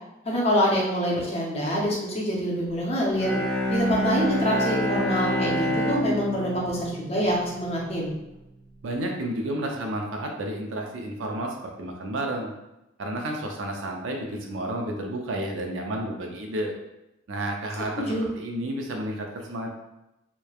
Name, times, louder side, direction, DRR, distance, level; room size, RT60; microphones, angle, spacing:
voice 1, 0.2-3.3 3.7-8.1 18.0-18.2, equal, 30° left, -4 dB, 0.6 m, -25 dB
Bowed string instrument, 3.1-8.0, equal, ahead, 0.8 m, -27 dB
voice 2, 8.8-12.5 13.0-16.7 17.3-19.7, right 1 dB, 70° right, 1 dB, 0.5 m, -31 dB
3.0 x 2.1 x 2.3 m, 0.93 s
head